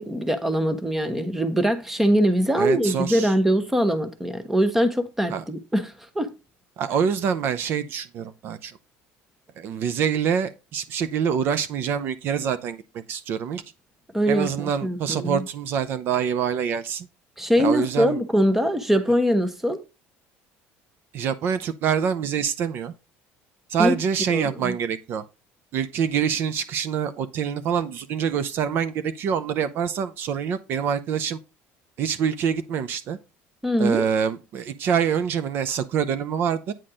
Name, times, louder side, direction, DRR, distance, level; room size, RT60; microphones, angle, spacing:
voice 1, 0.0-6.3 14.1-15.5 17.4-19.8 23.8-24.0 24.3-24.8 33.6-34.1, equal, 5° right, 0.9 m, -22 dB
voice 2, 2.6-3.3 5.3-5.4 6.8-8.8 9.6-12.8 13.1-13.6 14.3-17.1 17.6-18.2 21.1-22.9 23.7-25.2 25.7-31.4 32.0-33.2 33.8-36.7, right 7 dB, 50° right, 0.6 m, -25 dB
9.0 x 4.2 x 4.9 m
cardioid pair, 150°, 5 cm